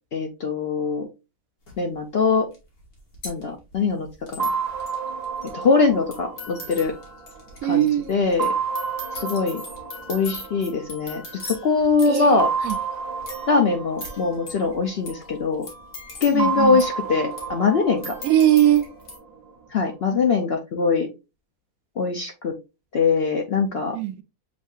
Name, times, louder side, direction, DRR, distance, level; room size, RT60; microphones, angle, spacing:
voice 1, 0.1-1.1 1.8-2.5 3.2-4.5 5.5-6.9 7.6-8.5 9.1-9.6 10.1-12.5 13.5-15.7 16.2-18.1 19.7-21.1 22.0-22.5 22.9-24.0, left 4 dB, 60° left, 0.7 m, -22 dB
sound 1, 1.7-1.8 2.5-2.6 2.8-19.2, left 2 dB, 85° left, 2.2 m, -40 dB
sound 2, 4.4-7.7 8.4-11.3 12.4-15.5 16.4-19.5, right 5 dB, 50° right, 0.5 m, -31 dB
voice 2, 7.6-8.1 12.1-12.8 16.3-16.8 18.2-18.9 23.9-24.2, right 12 dB, 75° right, 1.0 m, -20 dB
7.1 x 2.7 x 2.3 m
omnidirectional pair, 1.6 m